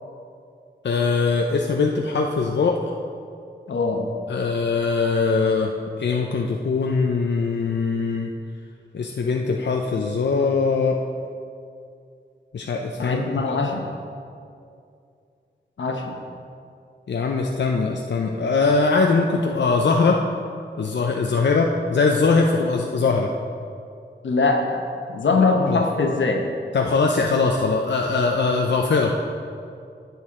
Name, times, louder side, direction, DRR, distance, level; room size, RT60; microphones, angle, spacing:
voice 1, 0.8-2.9 4.3-5.7 6.0-8.3 8.9-11.0 12.5-13.2 13.5-13.6 17.1-20.2 20.8-23.3 25.7-25.8 26.7-29.1, left 4 dB, 70° left, 1 dB, 0.6 m, -21 dB
voice 2, 3.7-4.0 13.0-13.8 15.8-16.1 24.2-24.8 25.1-26.5, left 3 dB, 85° left, 3 dB, 0.9 m, -22 dB
10.5 x 7.0 x 3.7 m, 2.4 s
cardioid pair, 45°, 19 cm